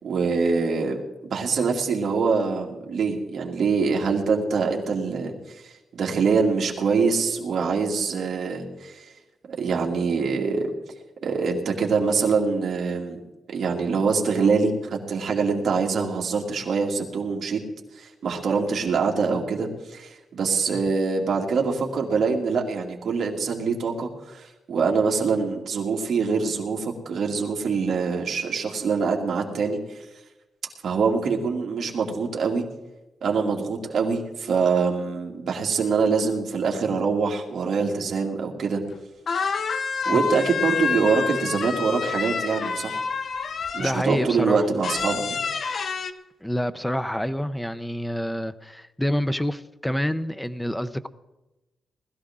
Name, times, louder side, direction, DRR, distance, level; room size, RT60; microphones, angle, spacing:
voice 1, 0.0-5.3 5.6-9.1 9.5-10.7 11.2-13.2 13.5-17.6 18.0-30.0 30.8-32.6 33.2-38.8 40.1-43.0 43.7-45.4, right 5 dB, 55° right, 0 dB, 2.5 m, -24 dB
sound 1, 38.9-39.0 39.3-44.1 44.8-46.1, left 5 dB, 45° left, 0.7 m, -28 dB
voice 2, 43.8-44.7 46.4-51.1, equal, 5° left, 13 dB, 0.6 m, -27 dB
20.0 x 14.0 x 3.7 m, 1.0 s
wide cardioid pair, 160°, 0 cm